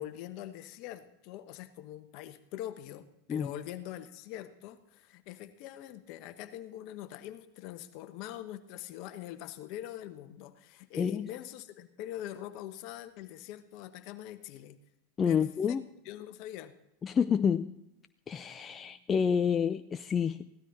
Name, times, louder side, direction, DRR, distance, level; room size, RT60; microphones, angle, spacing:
voice 1, 0.0-14.8 15.2-15.8 16.0-16.7, left 12 dB, 55° left, 10 dB, 1.2 m, -43 dB
voice 2, 10.9-11.3 15.2-15.8 17.0-17.7 18.3-20.5, left 7 dB, 25° left, 10 dB, 0.5 m, -28 dB
16.5 x 12.5 x 4.0 m, 0.85 s
hypercardioid pair, 100°, 0 cm